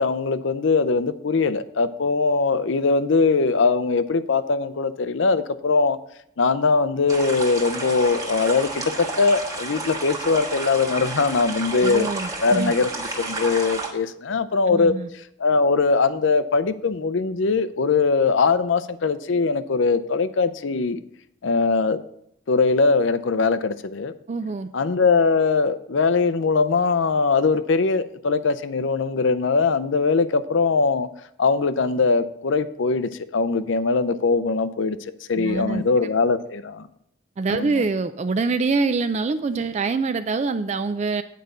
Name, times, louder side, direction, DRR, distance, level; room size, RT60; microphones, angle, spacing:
voice 1, 0.0-6.0 6.4-12.1 12.4-21.0 21.4-22.0 22.5-24.1 24.7-31.1 31.4-36.9 37.5-37.8, left 4 dB, 70° left, 14 dB, 0.5 m, -21 dB
sound 1, 7.1-13.9, right 3 dB, 15° right, 1.3 m, -31 dB
voice 2, 11.7-12.7 14.7-15.1 24.3-24.7 35.4-35.8 37.4-41.2, right 4 dB, 35° right, 10 dB, 0.3 m, -25 dB
9.2 x 5.1 x 6.6 m, 0.74 s
head